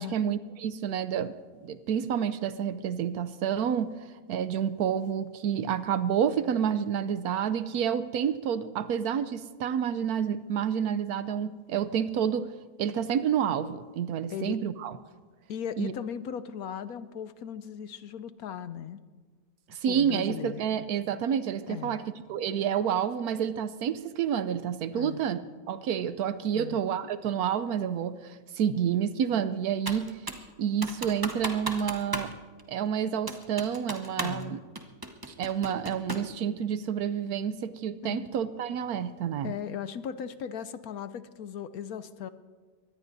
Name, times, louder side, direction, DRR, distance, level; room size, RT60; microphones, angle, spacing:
voice 1, 0.0-1.3 1.6-3.9 4.3-12.5 12.8-15.0 15.8-15.9 19.7-22.0 22.3-30.2 30.6-32.3 32.7-34.6 35.4-39.5, right 8 dB, 70° right, 13 dB, 1.0 m, -29 dB
voice 2, 15.5-19.0 19.9-20.6 21.7-22.0 24.9-25.3 26.5-26.8 34.2-34.6 38.0-38.3 39.4-42.3, left 8 dB, 70° left, 12 dB, 1.0 m, -37 dB
Computer keyboard, 29.9-30.5 30.8-32.3 32.6-32.7 33.3-34.4 34.8-36.3, right 2 dB, 20° right, 0.7 m, -35 dB
23.5 x 19.5 x 2.7 m, 1.5 s
omnidirectional pair, 1.8 m